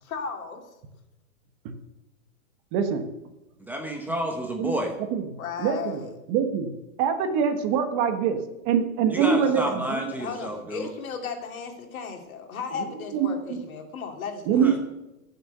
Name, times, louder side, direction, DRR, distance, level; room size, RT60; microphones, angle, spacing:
voice 1, 0.0-0.6 5.4-6.1 9.4-9.8 10.1-14.6, left 5 dB, 70° left, 4 dB, 2.7 m, -35 dB
voice 2, 2.7-3.1 4.6-4.7 5.1-5.2 5.6-6.0 6.3-6.7 7.0-8.4 8.6-10.1 13.1-13.6 14.5-14.8, right 7 dB, 30° right, 7 dB, 1.2 m, -24 dB
voice 3, 3.7-4.9 9.1-10.9 14.6-14.8, equal, 5° right, 1 dB, 0.8 m, -30 dB
15.0 x 7.0 x 6.7 m, 0.96 s
hypercardioid pair, 155°, 43 cm